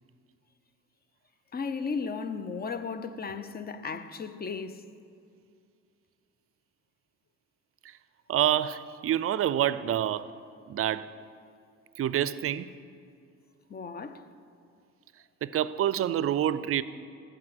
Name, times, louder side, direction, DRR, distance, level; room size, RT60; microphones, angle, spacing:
voice 1, 1.5-4.8 13.7-14.3, left 5 dB, 30° left, 0.7 m, -35 dB
voice 2, 8.3-10.3 10.7-11.1 12.0-12.7 15.4-16.8, right 11 dB, 50° right, 0.5 m, -27 dB
13.5 x 4.9 x 8.0 m
cardioid pair, 90°, 30 cm